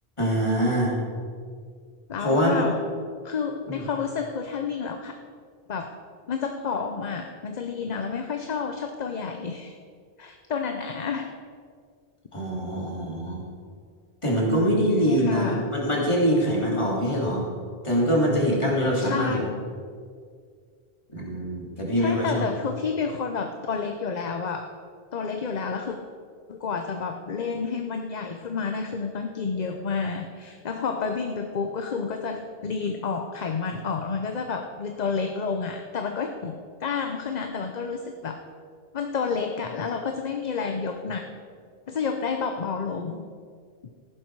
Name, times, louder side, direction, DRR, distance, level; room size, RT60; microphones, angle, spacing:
voice 1, 0.2-1.0 2.2-2.6 3.7-3.8 12.3-13.4 14.2-17.5 17.8-19.5 21.1-22.5, equal, 30° left, -3 dB, 2.9 m, -24 dB
voice 2, 2.1-2.9 3.2-5.1 5.7-5.9 6.3-9.8 10.2-11.3 15.1-15.7 19.0-19.4 22.0-24.7 25.1-26.0 26.5-38.4 38.9-41.3 41.9-43.2, left 5 dB, 45° left, 5 dB, 0.8 m, -30 dB
15.0 x 11.0 x 4.7 m, 2.1 s
omnidirectional pair, 1.0 m